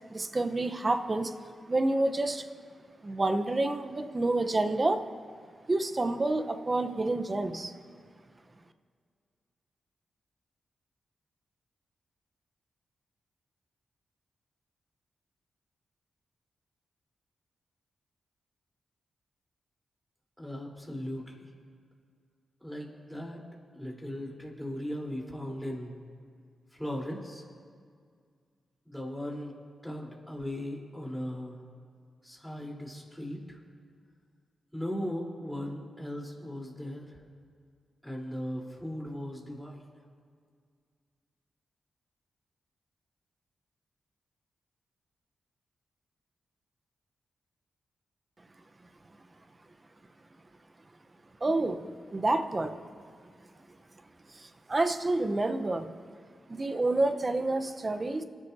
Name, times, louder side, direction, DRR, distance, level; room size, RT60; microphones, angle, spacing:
voice 1, 0.1-1.3 1.7-2.5 3.0-5.0 5.7-7.7 51.4-53.3 54.3-55.9 56.5-58.2, right 2 dB, 35° right, 8 dB, 1.0 m, -29 dB
voice 2, 20.4-21.5 22.6-23.4 23.7-26.0 26.7-27.4 28.9-29.5 29.8-31.6 32.2-33.6 34.7-37.2 38.0-39.8, equal, ahead, -3 dB, 4.1 m, -38 dB
25.5 x 11.5 x 2.9 m, 2.1 s
supercardioid pair, 45°, 0 cm